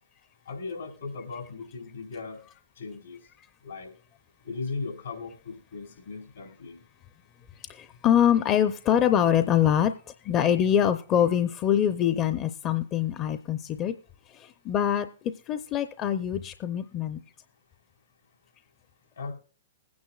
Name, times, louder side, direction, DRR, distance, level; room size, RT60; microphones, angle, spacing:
voice 1, 0.5-2.4 2.8-3.2 3.6-3.9 4.4-6.8 19.2-19.3, left 4 dB, 80° left, 3 dB, 4.0 m, -37 dB
voice 2, 7.6-14.0 14.3-17.2, left 9 dB, 30° left, 10 dB, 0.6 m, -24 dB
20.5 x 9.5 x 2.3 m, 0.37 s
hypercardioid pair, 120°, 0 cm